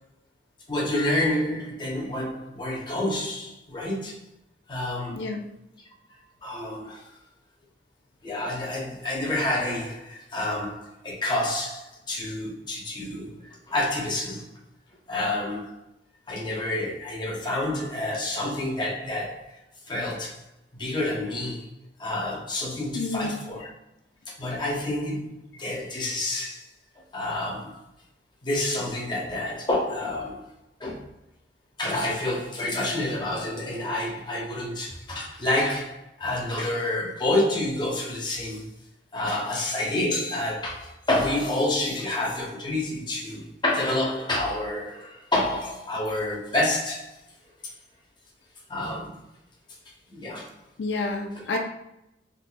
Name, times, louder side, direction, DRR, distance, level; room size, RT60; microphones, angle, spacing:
voice 1, 0.7-4.2 4.7-5.2 6.4-7.0 8.2-14.5 15.1-15.8 16.3-19.5 19.9-20.4 20.8-21.7 22.0-23.7 24.4-26.7 27.1-27.8 28.4-30.5 30.8-31.0 31.8-38.7 39.1-47.2 48.7-49.2 50.1-50.5, left 1 dB, 25° left, -3 dB, 0.8 m, -28 dB
voice 2, 5.1-5.4 22.9-23.3 50.8-51.6, left 3 dB, 90° left, 2 dB, 0.4 m, -29 dB
3.9 x 2.5 x 2.3 m, 0.84 s
head